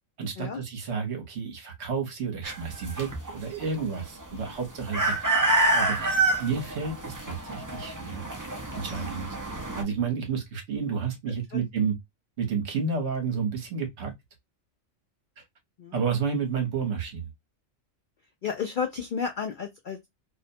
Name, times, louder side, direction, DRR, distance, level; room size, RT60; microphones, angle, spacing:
voice 1, 0.2-5.1 5.7-8.2 8.7-12.0 12.4-14.1 15.4-15.5 15.9-17.3, right 5 dB, 55° right, 1.1 m, -31 dB
sound 1, 2.4-9.8, right 2 dB, 30° right, 0.3 m, -28 dB
voice 2, 18.4-20.1, left 6 dB, 85° left, 0.4 m, -32 dB
2.7 x 2.1 x 2.6 m
omnidirectional pair, 1.4 m